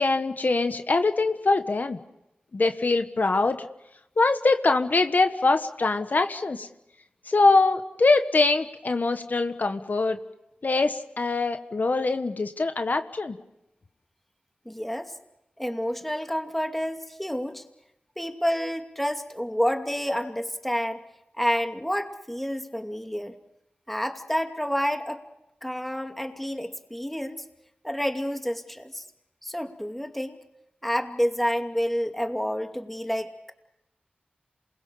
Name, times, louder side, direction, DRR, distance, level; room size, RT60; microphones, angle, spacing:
voice 1, 0.0-2.0 2.5-3.6 4.2-6.7 7.3-10.2 10.6-13.4, left 3 dB, 60° left, 8 dB, 1.3 m, -23 dB
voice 2, 14.7-15.1 15.6-17.6 18.2-21.0 21.4-23.3 23.9-25.2 25.6-27.4 27.8-29.0 29.4-30.4 30.8-33.3, equal, 5° left, 5 dB, 2.5 m, -29 dB
27.5 x 20.5 x 7.0 m, 0.87 s
cardioid pair, 45°, 3 cm